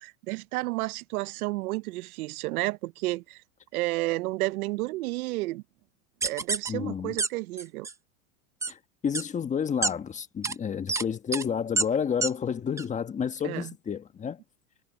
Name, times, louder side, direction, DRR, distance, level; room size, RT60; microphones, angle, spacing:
voice 1, 0.0-3.4 3.7-5.6 6.2-7.9 13.4-13.7, right 20 dB, 85° right, 0.7 m, -31 dB
sound 1, 6.2-6.7 7.2-7.3 7.6-7.9 8.6-8.7 9.1-9.2 9.8-9.9 10.4-10.5 10.9-11.0 11.3-11.4 11.8-11.9 12.2-12.3 12.8-12.9, right 4 dB, 5° right, 0.6 m, -27 dB
voice 2, 6.7-7.2 8.7-14.4, left 7 dB, 15° left, 1.3 m, -30 dB
supercardioid pair, 145°, 43 cm